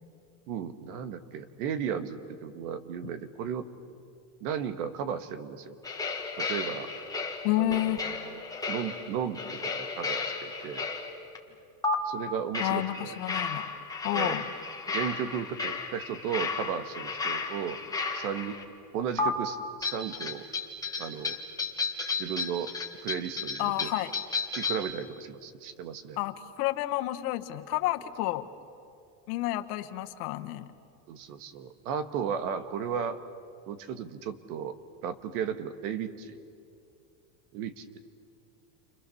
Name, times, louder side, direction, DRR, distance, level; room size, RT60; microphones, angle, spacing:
voice 1, 0.5-3.7 4.4-5.8 6.4-6.9 7.6-8.4 8.7-10.8 12.0-13.2 14.1-14.5 14.9-17.8 18.1-18.6 18.9-20.5 21.0-21.4 22.2-22.7 23.0-23.9 24.5-26.2 31.1-33.2 33.7-34.8 35.0-36.3 37.5-38.0, right 8 dB, 70° right, 11 dB, 1.8 m, -35 dB
sound 1, 5.8-11.4 11.8-11.9 12.5-18.6 19.2-19.3 19.8-24.9, left 4 dB, 10° left, 1.8 m, -33 dB
voice 2, 7.4-8.0 12.6-13.6 14.0-14.4 23.6-24.1 26.2-28.5 29.3-30.7, left 16 dB, 75° left, 8 dB, 1.5 m, -30 dB
30.0 x 25.5 x 7.1 m, 2.5 s
cardioid pair, 165°, 46 cm